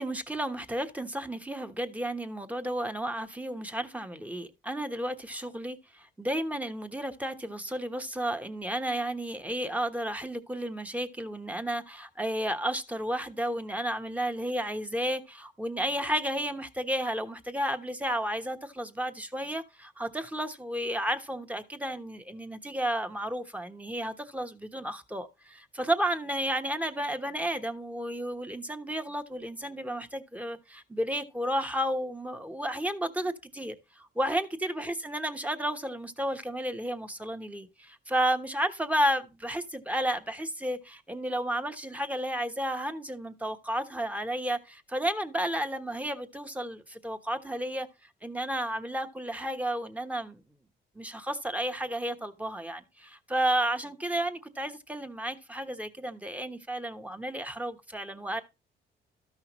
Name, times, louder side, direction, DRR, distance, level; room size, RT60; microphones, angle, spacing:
voice 1, 0.0-47.9 48.2-50.4 50.9-58.4, right 1 dB, 5° right, 1.1 m, -32 dB
13.0 x 5.7 x 3.1 m
cardioid pair, 90°, 20 cm